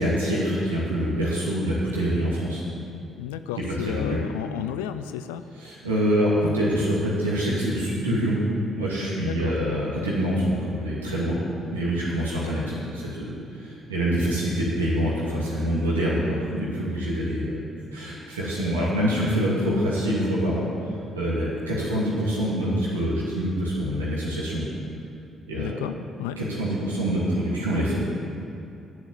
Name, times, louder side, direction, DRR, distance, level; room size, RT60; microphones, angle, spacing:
voice 1, 0.0-2.6 3.8-4.2 5.6-8.4 8.8-11.4 11.7-17.5 17.9-24.7 25.5-25.8 26.4-28.0, equal, 85° right, -8 dB, 2.3 m, -25 dB
voice 2, 3.2-5.4 9.2-9.6 25.5-26.4, left 10 dB, 75° left, 10 dB, 0.4 m, -33 dB
10.5 x 7.0 x 8.7 m, 2.7 s
figure-of-eight pair, 45°, 0 cm